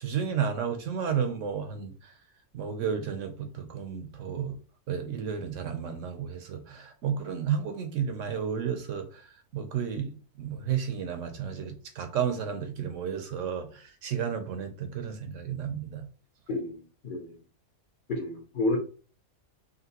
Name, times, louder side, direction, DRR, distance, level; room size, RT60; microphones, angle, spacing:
voice 1, 0.0-2.1 2.5-4.6 4.9-9.3 9.5-16.1, right 7 dB, 70° right, 0.9 m, -32 dB
voice 2, 16.5-17.4 18.1-18.8, left 2 dB, 45° left, 0.7 m, -30 dB
5.1 x 2.9 x 2.8 m
omnidirectional pair, 1.5 m